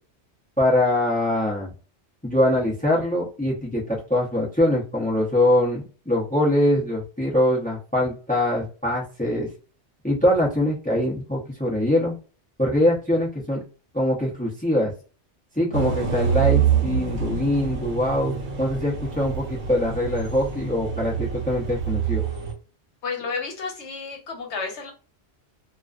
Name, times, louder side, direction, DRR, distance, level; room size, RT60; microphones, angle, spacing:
voice 1, 0.6-1.7 2.2-9.5 10.0-12.2 12.6-13.6 13.9-14.9 15.6-22.2, left 1 dB, 10° left, -2 dB, 0.4 m, -23 dB
sound 1, 15.7-22.5, right 7 dB, 75° right, 1.0 m, -26 dB
voice 2, 23.0-24.9, left 4 dB, 85° left, 3 dB, 1.1 m, -31 dB
2.3 x 2.3 x 2.3 m, 0.36 s
omnidirectional pair, 1.1 m